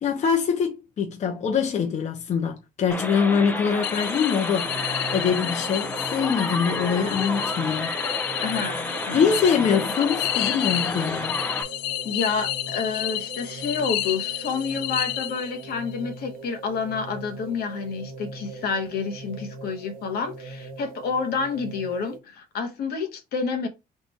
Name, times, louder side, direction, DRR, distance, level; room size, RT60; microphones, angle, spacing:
voice 1, 0.0-4.7 5.1-7.9 9.1-11.4, left 6 dB, 45° left, 0.7 m, -24 dB
sound 1, 2.9-11.6, left 1 dB, 10° left, 0.5 m, -31 dB
sound 2, 3.8-15.8, left 14 dB, 90° left, 0.4 m, -31 dB
sound 3, 4.6-22.2, right 3 dB, 60° right, 0.9 m, -41 dB
voice 2, 8.4-9.7 11.4-11.5 12.0-23.7, left 5 dB, 70° left, 1.0 m, -29 dB
3.7 x 2.4 x 4.1 m
cardioid pair, 110°, 17 cm